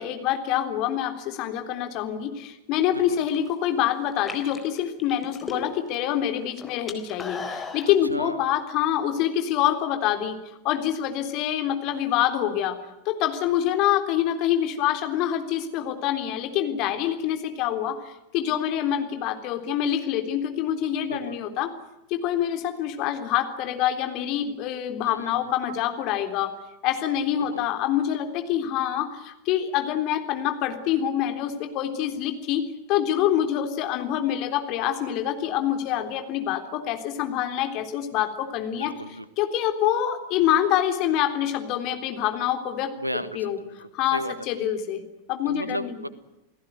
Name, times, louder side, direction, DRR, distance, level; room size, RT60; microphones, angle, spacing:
voice 1, 0.0-10.4 10.6-12.8 13.1-21.7 22.1-26.5 26.8-38.9 39.4-43.6 43.9-45.0 45.3-46.0, left 11 dB, 40° left, 6 dB, 3.6 m, -26 dB
sound 1, 3.1-3.5 4.1-6.0 6.3-7.9, left 4 dB, 15° left, 4.2 m, -36 dB
voice 2, 7.8-8.4 21.1-21.4 25.0-25.3 27.4-27.7 38.7-39.2 42.9-44.3 45.5-46.1, right 1 dB, 85° right, 15 dB, 1.5 m, -34 dB
29.0 x 18.0 x 9.3 m, 0.93 s
figure-of-eight pair, 90°, 0 cm